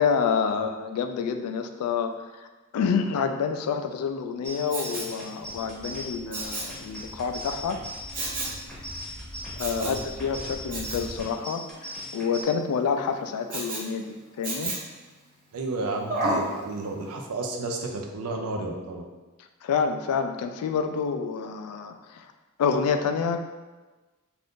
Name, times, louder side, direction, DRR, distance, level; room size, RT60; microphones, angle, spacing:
voice 1, 0.0-2.1 2.7-7.8 9.6-14.7 19.6-22.2 22.6-23.5, left 6 dB, 85° left, 11 dB, 0.3 m, -28 dB
sound 1, 4.4-12.4, equal, ahead, 0.7 m, -40 dB
Respiratory sounds, 4.7-5.2 6.3-6.8 8.1-8.6 9.6-10.0 10.7-11.1 13.5-13.9 14.4-15.0 16.1-16.5 17.0-17.1, right 2 dB, 40° right, 0.6 m, -30 dB
sound 2, 5.4-11.3, equal, 65° right, 1.0 m, -44 dB
voice 2, 15.5-19.0, right 2 dB, 85° right, 2 dB, 0.5 m, -32 dB
2.5 x 2.5 x 3.5 m, 1.2 s
head